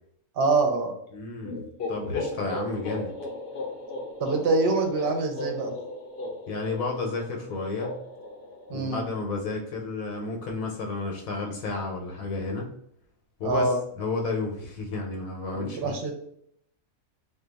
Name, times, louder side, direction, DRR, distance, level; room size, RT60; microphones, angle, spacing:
voice 1, 0.4-0.9 4.2-5.7 8.7-9.0 13.4-13.8 15.5-16.1, right 3 dB, 55° right, 3 dB, 0.7 m, -25 dB
voice 2, 1.1-1.6 1.9-3.1 6.5-8.0 8.7-12.7 13.4-15.9, left 3 dB, 75° left, 1 dB, 1.0 m, -32 dB
sound 1, 1.4-9.1, left 2 dB, 55° left, 0.7 m, -37 dB
2.6 x 2.2 x 3.9 m, 0.71 s
omnidirectional pair, 1.5 m